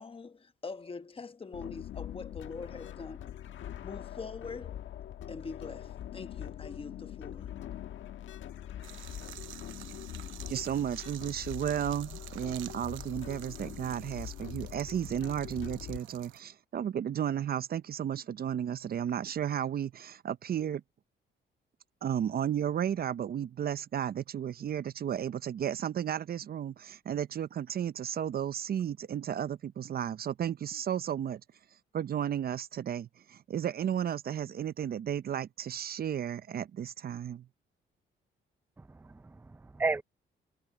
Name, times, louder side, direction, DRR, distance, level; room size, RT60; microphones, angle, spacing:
voice 1, 0.0-3.3 3.8-4.9 5.3-7.6, left 4 dB, 25° left, 1.2 m, -43 dB
sound 1, 1.5-16.0, left 11 dB, 75° left, 1.4 m, -43 dB
sound 2, 8.8-16.4, right 13 dB, 80° right, 0.9 m, -49 dB
voice 2, 10.5-20.8 22.0-31.4 31.9-37.5, right 9 dB, 50° right, 0.7 m, -33 dB
voice 3, 38.8-40.0, right 3 dB, 10° right, 0.4 m, -34 dB
cardioid pair, 90°, 20 cm